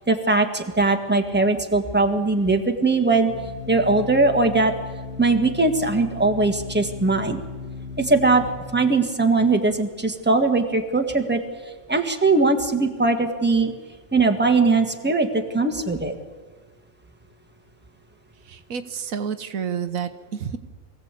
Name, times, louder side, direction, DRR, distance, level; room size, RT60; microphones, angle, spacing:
voice 1, 0.1-3.3 3.7-4.7 5.2-7.4 8.0-8.4 8.7-11.4 11.9-13.7 14.1-16.1, right 3 dB, 10° right, 4 dB, 1.6 m, -20 dB
Organ, 1.7-11.8, left 5 dB, 55° left, 2.8 m, -38 dB
voice 2, 18.5-20.6, right 7 dB, 80° right, 10 dB, 1.4 m, -29 dB
23.5 x 16.5 x 8.3 m, 1.4 s
omnidirectional pair, 1.4 m